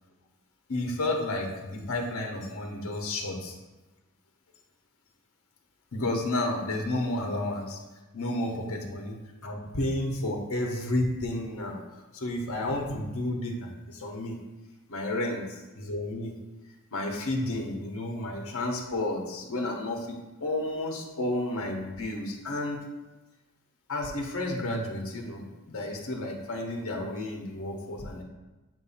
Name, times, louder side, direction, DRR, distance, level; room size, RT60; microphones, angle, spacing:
voice 1, 0.7-3.5 5.9-7.8 8.1-9.2 9.4-14.4 14.9-15.4 15.9-16.3 16.9-22.8 23.9-28.2, left 1 dB, 70° left, 1 dB, 1.1 m, -31 dB
7.8 x 2.7 x 5.6 m, 1.1 s
head